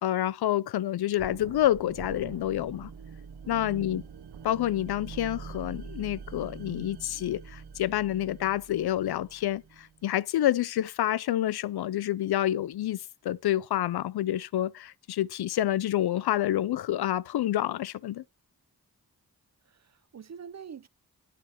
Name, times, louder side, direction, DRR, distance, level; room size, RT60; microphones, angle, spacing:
voice 1, 0.0-2.9 3.5-4.0 4.4-18.2, left 12 dB, 70° left, 0.5 m, -28 dB
sound 1, 1.2-10.0, right 6 dB, 80° right, 1.0 m, -44 dB
voice 2, 3.4-3.8 19.7-20.9, right 7 dB, 45° right, 0.6 m, -46 dB
9.4 x 8.5 x 3.0 m
cardioid pair, 40°, 39 cm